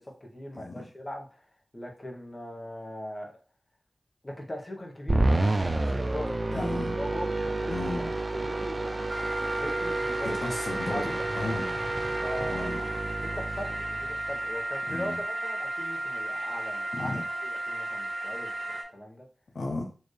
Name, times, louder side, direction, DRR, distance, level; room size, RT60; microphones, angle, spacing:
voice 1, 0.0-3.3 4.2-9.1 9.5-10.4 10.9-11.3 12.2-12.8 13.2-19.3, left 1 dB, 30° left, 2 dB, 1.1 m, -40 dB
sound 1, 5.1-14.5, right 2 dB, 35° right, 0.4 m, -30 dB
voice 2, 6.5-7.0 7.7-8.1 10.4-11.7 12.5-12.8 14.9-15.2 16.9-17.2 19.5-19.9, left 2 dB, 75° left, 1 dB, 0.7 m, -34 dB
sound 2, 9.1-18.8, right 1 dB, 90° right, 1.2 m, -34 dB
Sink (filling or washing), 9.3-13.1, right 1 dB, 5° right, 1.0 m, -46 dB
4.5 x 2.8 x 3.2 m, 0.37 s
cardioid pair, 55°, 0 cm